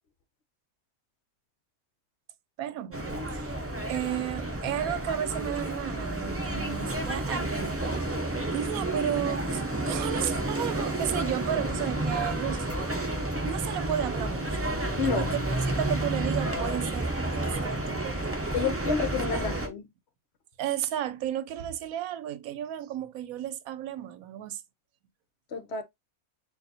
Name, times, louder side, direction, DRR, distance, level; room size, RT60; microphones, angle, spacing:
voice 1, 2.6-3.6 3.9-8.2 8.5-12.7 13.4-14.7 15.0-15.4 15.7-18.5 19.3-19.5 20.6-24.6, right 11 dB, 80° right, 1.0 m, -33 dB
sound 1, 2.9-19.7, right 1 dB, 15° right, 0.6 m, -30 dB
voice 2, 15.0-15.4 18.5-19.9 25.5-25.8, left 5 dB, 60° left, 0.9 m, -29 dB
6.7 x 2.6 x 2.7 m
omnidirectional pair, 1.5 m